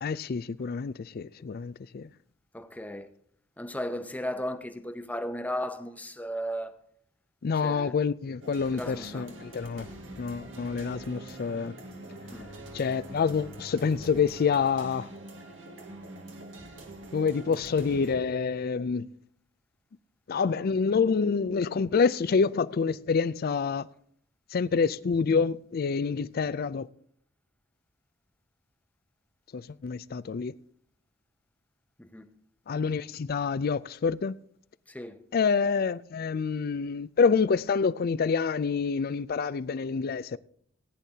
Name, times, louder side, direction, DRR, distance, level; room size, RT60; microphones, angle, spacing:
voice 1, 0.0-2.1 7.4-9.9 10.2-11.7 12.7-15.1 17.1-19.1 20.3-23.9 24.5-26.9 29.5-30.5 32.7-34.3 35.3-40.4, left 5 dB, 50° left, 0.4 m, -27 dB
voice 2, 2.5-3.1 3.6-6.7 7.6-7.9 8.7-9.3 12.3-12.5 32.0-32.2 34.9-35.2, equal, 10° left, 0.8 m, -35 dB
sound 1, 8.4-18.2, right 1 dB, 80° right, 1.9 m, -44 dB
18.5 x 10.0 x 2.8 m
head